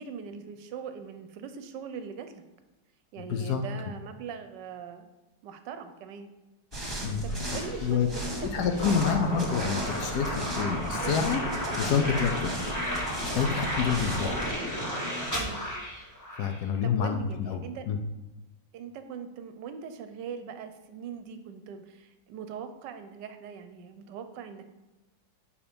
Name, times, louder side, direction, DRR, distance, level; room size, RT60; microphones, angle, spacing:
voice 1, 0.0-2.4 3.1-5.1 5.4-6.3 7.2-8.9 11.0-11.2 13.9-14.2 15.3-15.6 16.6-17.9 18.7-24.6, right 6 dB, 75° right, 9 dB, 1.2 m, -41 dB
voice 2, 3.3-3.6 7.0-7.2 7.5-8.1 8.5-11.4 11.8-12.5 13.3-14.3 16.3-18.0, left 7 dB, 70° left, 6 dB, 1.1 m, -28 dB
Drum kit / Snare drum, 6.7-15.8, equal, 55° left, 1.8 m, -42 dB
sound 1, 6.7-14.5, right 1 dB, 15° right, 1.3 m, -37 dB
sound 2, 8.8-16.6, equal, 10° left, 1.2 m, -33 dB
5.0 x 4.9 x 5.2 m, 1.1 s
omnidirectional pair, 2.0 m